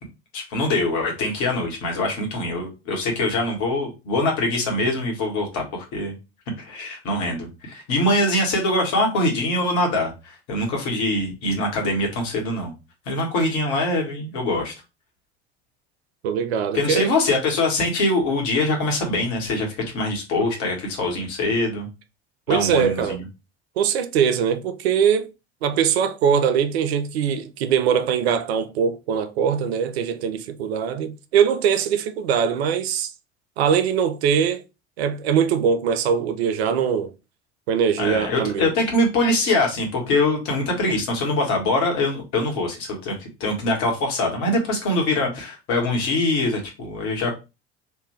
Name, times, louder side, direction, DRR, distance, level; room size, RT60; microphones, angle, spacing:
voice 1, 0.3-6.2 6.6-12.7 13.1-14.7 16.7-19.7 19.9-21.9 22.5-23.2 38.0-47.3, left 2 dB, 55° left, 1.6 m, -23 dB
voice 2, 16.2-17.1 22.5-23.2 23.8-25.3 25.6-33.1 33.6-34.6 35.0-37.1 37.7-38.7, right 7 dB, 65° right, 0.6 m, -22 dB
3.4 x 2.7 x 3.2 m
figure-of-eight pair, 65°, 34 cm